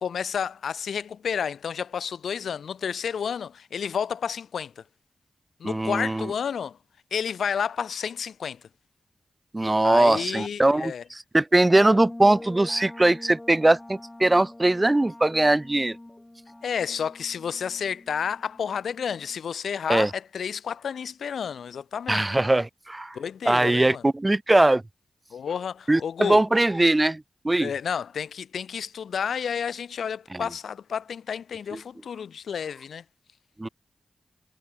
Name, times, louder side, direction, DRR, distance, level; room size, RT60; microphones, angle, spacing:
voice 1, 0.0-4.8 5.6-6.8 7.1-8.6 9.8-11.0 16.6-22.2 23.1-24.0 25.3-26.4 27.6-33.0, left 7 dB, 85° left, 2.6 m, -31 dB
voice 2, 5.6-6.3 9.5-16.0 19.9-20.1 22.1-23.2 23.5-24.8 25.9-27.7 30.3-30.4 33.6-33.7, right 2 dB, 25° right, 0.5 m, -21 dB
sound 1, 11.7-19.4, left 1 dB, 20° left, 3.9 m, -44 dB
cardioid pair, 45°, 0 cm